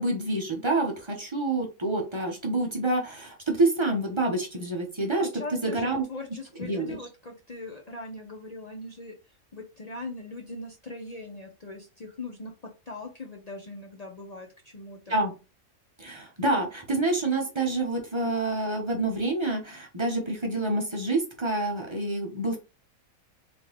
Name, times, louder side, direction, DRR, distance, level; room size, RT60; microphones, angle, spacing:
voice 1, 0.0-5.3 5.6-6.0 6.6-7.0 15.1-15.3 16.0-22.6, right 2 dB, 25° right, 1 dB, 0.8 m, -27 dB
voice 2, 5.2-9.1 9.5-15.1, left 2 dB, 40° left, 1 dB, 0.6 m, -40 dB
3.8 x 3.4 x 3.0 m, 0.30 s
omnidirectional pair, 1.5 m